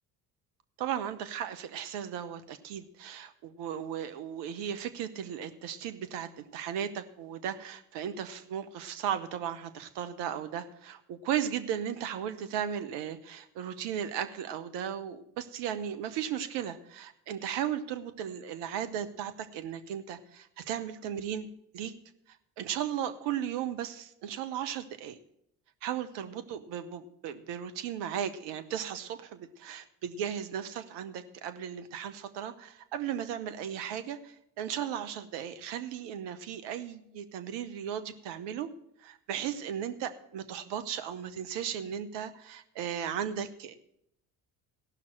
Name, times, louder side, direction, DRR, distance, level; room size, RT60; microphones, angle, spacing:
voice 1, 0.8-21.5 21.7-21.9 22.3-25.2 25.8-38.7 39.0-43.7, right 9 dB, 65° right, 9 dB, 1.1 m, -36 dB
15.0 x 5.9 x 7.6 m, 0.75 s
hypercardioid pair, 55°, 45 cm